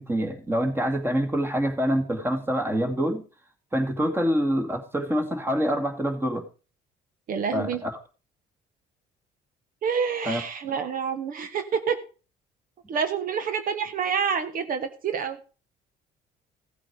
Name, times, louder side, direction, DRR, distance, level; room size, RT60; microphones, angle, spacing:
voice 1, 0.0-3.3 3.7-6.5 7.5-8.0 10.2-10.4, equal, 15° right, 2.4 m, -26 dB
voice 2, 7.3-7.8 9.8-12.0 12.9-15.4, right 6 dB, 55° right, 1.4 m, -28 dB
16.0 x 8.4 x 5.0 m
cardioid pair, 110°, 17 cm